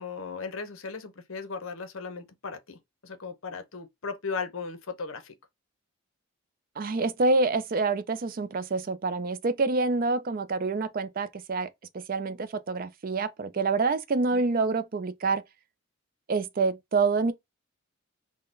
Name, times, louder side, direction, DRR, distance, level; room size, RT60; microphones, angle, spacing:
voice 1, 0.0-5.3 14.3-14.5, left 5 dB, 65° left, 0.8 m, -37 dB
voice 2, 6.8-11.7 12.1-15.4 16.3-17.3, right 3 dB, 40° right, 0.4 m, -27 dB
3.8 x 2.1 x 3.7 m
head